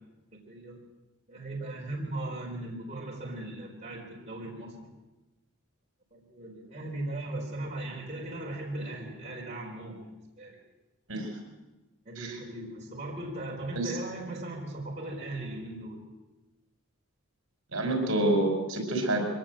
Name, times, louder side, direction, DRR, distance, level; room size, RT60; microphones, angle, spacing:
voice 1, 0.3-0.8 1.3-4.9 6.1-10.0 10.4-10.6 12.0-16.0, right 2 dB, 30° right, -3 dB, 4.3 m, -38 dB
voice 2, 17.7-19.3, right 1 dB, 65° right, 4 dB, 5.0 m, -27 dB
23.5 x 18.0 x 7.6 m, 1.1 s
head